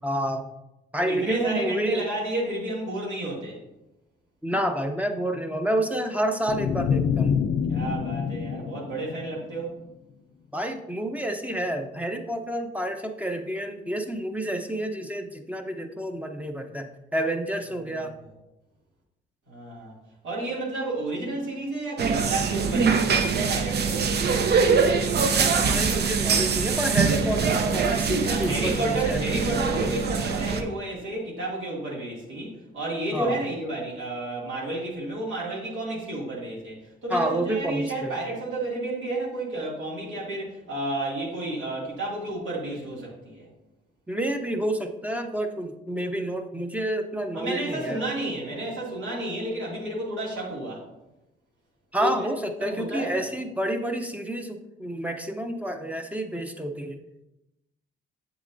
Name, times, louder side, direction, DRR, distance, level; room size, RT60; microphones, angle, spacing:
voice 1, 0.0-0.5 0.9-2.0 4.4-7.4 10.5-18.1 25.1-29.2 33.1-33.4 37.1-38.2 44.1-48.0 51.9-57.0, right 1 dB, 5° right, 5 dB, 0.7 m, -29 dB
voice 2, 1.0-3.6 7.7-9.7 19.5-19.9 20.2-24.4 28.2-43.5 47.3-50.8 52.0-52.3 52.6-53.2, right 2 dB, 80° right, -5 dB, 2.3 m, -31 dB
sound 1, 6.5-9.7, left 7 dB, 60° left, 0.4 m, -27 dB
sound 2, 22.0-30.6, right 5 dB, 55° right, 0.7 m, -23 dB
7.4 x 6.9 x 2.6 m, 0.92 s
cardioid pair, 90°, 20 cm